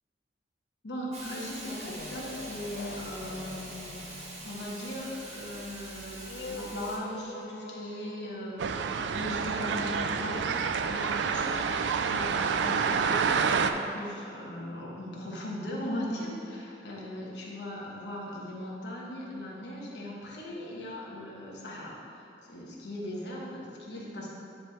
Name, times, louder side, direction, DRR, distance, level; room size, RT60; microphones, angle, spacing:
voice 1, 0.8-11.6 11.9-24.3, left 1 dB, 80° left, -4 dB, 1.4 m, -39 dB
Hiss, 1.1-7.0, right 2 dB, 40° right, 1.1 m, -44 dB
sound 1, 1.7-12.8, left 3 dB, 60° left, 0.4 m, -46 dB
sound 2, 8.6-13.7, right 6 dB, 85° right, 0.4 m, -28 dB
10.0 x 3.5 x 4.2 m, 2.6 s
head